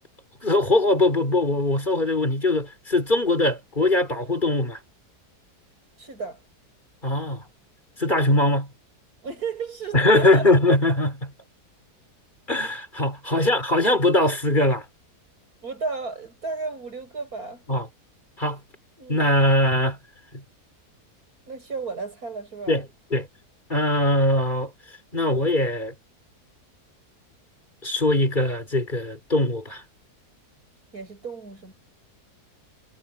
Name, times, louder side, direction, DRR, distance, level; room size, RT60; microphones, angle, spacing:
voice 1, 0.4-4.8 7.0-7.4 8.0-8.7 9.9-11.3 12.5-14.8 17.7-17.9 18.4-18.6 19.1-20.0 20.3-20.4 22.7-22.8 23.1-23.3 23.7-24.7 25.1-25.9 27.8-29.8, left 1 dB, 30° left, 4.2 m, -21 dB
voice 2, 6.0-6.4 9.2-10.5 13.3-13.5 15.6-17.6 19.0-19.4 21.5-22.8 30.9-31.7, right 4 dB, 65° right, 7.3 m, -33 dB
omnidirectional pair, 1.7 m